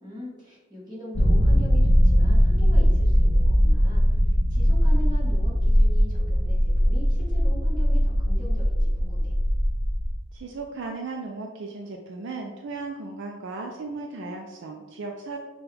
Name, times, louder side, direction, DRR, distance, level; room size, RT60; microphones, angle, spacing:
voice 1, 0.0-9.3, left 1 dB, 20° right, -6 dB, 1.4 m, -41 dB
sound 1, 1.1-10.1, equal, 60° left, 0.8 m, -20 dB
voice 2, 10.3-15.4, right 3 dB, 60° right, 2 dB, 0.4 m, -36 dB
5.9 x 2.3 x 3.3 m, 1.3 s
head